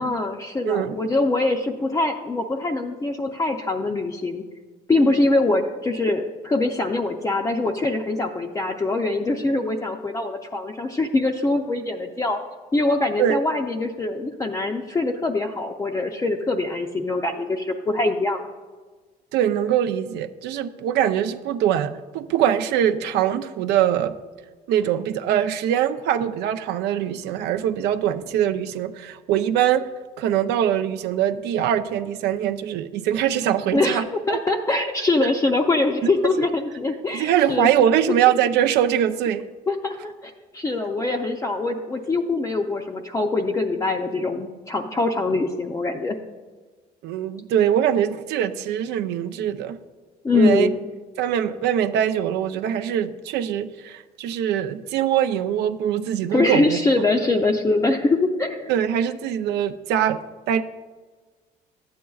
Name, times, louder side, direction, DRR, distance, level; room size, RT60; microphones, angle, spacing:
voice 1, 0.0-4.4 4.9-12.4 12.7-18.4 33.7-37.7 39.7-46.2 50.2-50.7 56.3-58.7, left 2 dB, 20° left, 1 dB, 0.5 m, -23 dB
voice 2, 19.3-24.1 24.7-29.8 30.2-34.0 34.3-34.4 36.0-36.1 36.4-36.5 37.1-39.5 47.0-49.8 50.3-50.7 51.2-56.8 58.7-60.2 60.5-60.6, right 10 dB, 85° right, 9 dB, 0.5 m, -22 dB
12.0 x 8.6 x 2.3 m, 1.4 s
cardioid pair, 110°, 17 cm